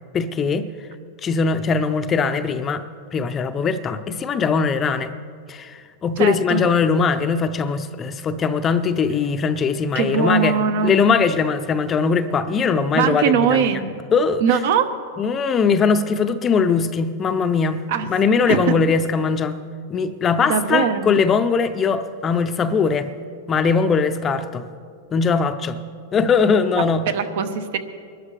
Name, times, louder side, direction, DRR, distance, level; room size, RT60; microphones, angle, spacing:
voice 1, 0.1-0.7 1.2-2.8 3.1-5.1 5.5-10.6 10.8-13.7 14.1-14.4 15.2-19.6 19.9-23.1 23.5-24.6 25.1-25.8 26.1-27.0, left 5 dB, 20° left, 10 dB, 0.5 m, -20 dB
voice 2, 6.2-6.6 9.9-11.2 12.9-14.0 14.4-14.9 17.9-18.1 18.5-18.8 20.5-21.1 26.8-27.8, right 7 dB, 65° right, 9 dB, 1.1 m, -21 dB
22.5 x 12.5 x 3.3 m, 2.2 s
supercardioid pair, 145°, 0 cm